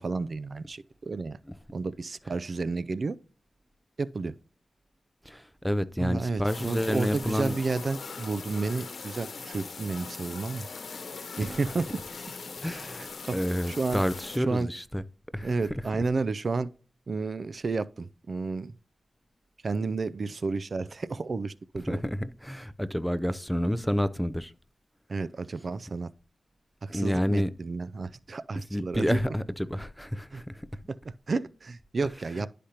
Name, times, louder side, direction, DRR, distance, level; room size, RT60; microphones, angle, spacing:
voice 1, 0.0-1.4 1.7-3.2 4.0-4.3 6.0-10.7 11.4-11.9 12.6-13.4 13.7-14.0 14.5-14.7 15.4-16.7 17.1-18.7 19.6-22.0 25.1-26.1 26.8-29.2 30.3-30.4 30.9-32.5, right 3 dB, 55° right, 0.4 m, -31 dB
voice 2, 5.3-7.5 12.6-13.0 13.3-15.0 15.3-15.8 21.9-24.5 26.9-27.5 28.7-30.7, equal, ahead, 0.5 m, -29 dB
sound 1, 6.5-14.4, left 4 dB, 70° left, 1.0 m, -40 dB
11.5 x 5.0 x 2.8 m
cardioid pair, 75°, 0 cm